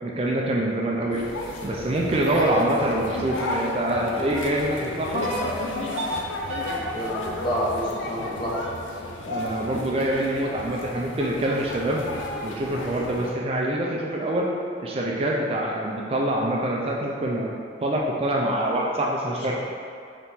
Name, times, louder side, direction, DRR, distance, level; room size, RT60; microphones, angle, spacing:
voice 1, 0.0-1.2 1.6-5.3 9.3-12.0 12.4-14.5 14.8-17.5 17.8-19.5, right 1 dB, 30° right, -2 dB, 0.3 m, -25 dB
sound 1, 1.1-13.3, left 2 dB, 85° left, 0.5 m, -33 dB
sound 2, 2.4-4.5 5.2-8.3, right 1 dB, 85° right, 0.6 m, -34 dB
voice 2, 6.8-8.6, equal, 25° left, -6 dB, 0.7 m, -28 dB
4.1 x 2.9 x 3.5 m, 2.3 s
head